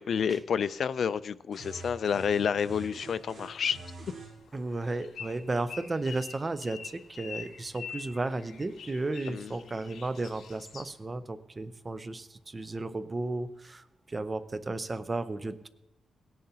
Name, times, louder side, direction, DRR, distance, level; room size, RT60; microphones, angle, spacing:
voice 1, 0.0-3.8 9.3-9.5, left 7 dB, 55° left, 0.3 m, -29 dB
sound 1, 1.5-4.3, right 2 dB, 40° right, 3.7 m, -45 dB
sound 2, 3.1-11.0, left 6 dB, 85° left, 1.8 m, -46 dB
voice 2, 4.5-15.7, right 2 dB, 25° right, 0.5 m, -34 dB
17.0 x 10.5 x 2.8 m
wide cardioid pair, 140°, 0 cm